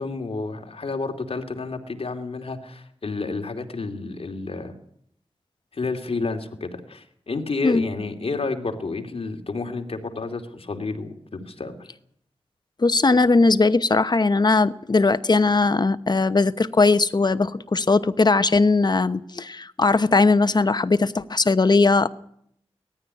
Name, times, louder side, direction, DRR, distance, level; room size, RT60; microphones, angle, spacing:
voice 1, 0.0-4.7 5.7-11.9, left 3 dB, 65° left, 4 dB, 2.8 m, -30 dB
voice 2, 12.8-22.1, left 3 dB, 40° left, 12 dB, 0.9 m, -19 dB
19.0 x 14.5 x 9.7 m, 0.68 s
wide cardioid pair, 85°, 11 cm